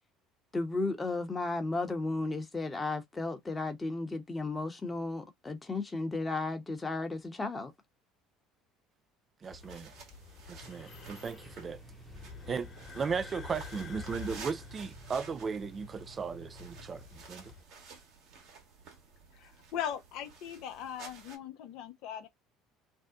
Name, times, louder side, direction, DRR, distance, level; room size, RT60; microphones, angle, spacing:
voice 1, 0.5-7.7, left 3 dB, 20° left, 0.9 m, -34 dB
voice 2, 9.4-9.9 10.5-11.8 12.5-12.7 12.9-17.5, right 5 dB, 35° right, 0.4 m, -36 dB
sound 1, 9.4-21.4, right 5 dB, 65° right, 1.2 m, -53 dB
sound 2, 9.5-17.6, left 5 dB, 40° left, 1.2 m, -49 dB
sound 3, 10.6-17.1, right 5 dB, 5° right, 0.9 m, -55 dB
voice 3, 19.3-22.3, left 10 dB, 70° left, 0.6 m, -39 dB
2.7 x 2.1 x 3.6 m
hypercardioid pair, 75°, 0 cm